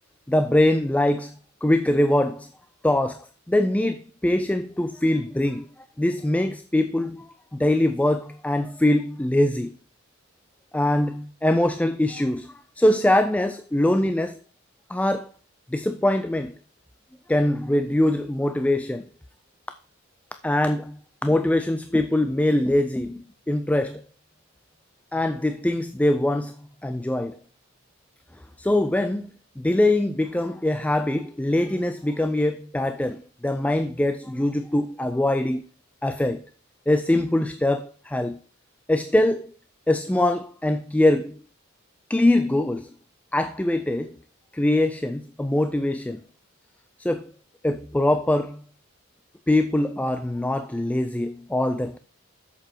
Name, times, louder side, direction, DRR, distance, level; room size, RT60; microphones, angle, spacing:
voice 1, 0.3-1.3 1.6-2.5 2.8-5.7 6.0-7.3 7.5-9.7 10.7-14.4 14.9-15.3 15.7-16.5 17.3-19.1 20.4-21.0 21.2-24.0 25.1-26.5 26.8-27.4 28.6-29.3 29.6-35.6 36.0-36.4 36.9-38.4 38.9-39.5 39.9-41.3 42.1-42.9 43.3-44.2 44.5-46.2 47.0-47.3 47.6-48.6 49.5-52.0, left 1 dB, 5° left, 0.3 m, -23 dB
7.7 x 6.8 x 4.5 m
head